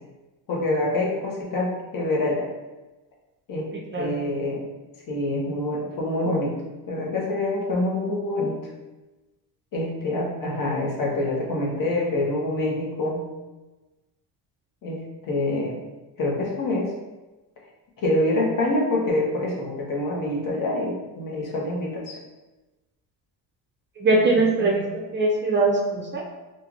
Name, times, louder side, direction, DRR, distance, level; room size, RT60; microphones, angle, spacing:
voice 1, 0.5-2.5 3.5-3.7 4.0-4.7 5.1-6.6 6.9-8.6 9.7-13.3 14.8-15.8 16.2-16.9 18.0-22.2 24.1-24.8, left 1 dB, 50° left, -2 dB, 1.0 m, -26 dB
voice 2, 3.7-4.1 24.0-24.8 25.1-26.2, right 2 dB, 25° right, -1 dB, 0.5 m, -21 dB
4.4 x 2.5 x 2.5 m, 1.1 s
cardioid pair, 115°, 42 cm